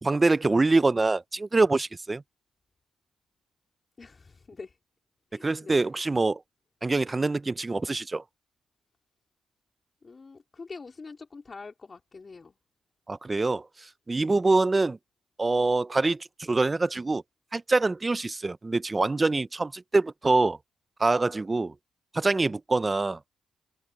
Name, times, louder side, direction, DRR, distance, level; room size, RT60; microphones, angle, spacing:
voice 1, 0.0-2.2 5.3-6.4 6.8-8.2 13.1-15.0 15.4-17.2 17.5-20.6 21.0-21.7 22.1-23.2, right 3 dB, 20° right, 0.6 m, -25 dB
voice 2, 4.0-4.8 5.3-5.9 10.0-12.6, left 4 dB, 30° left, 3.5 m, -45 dB
cardioid pair, 90°, 0 cm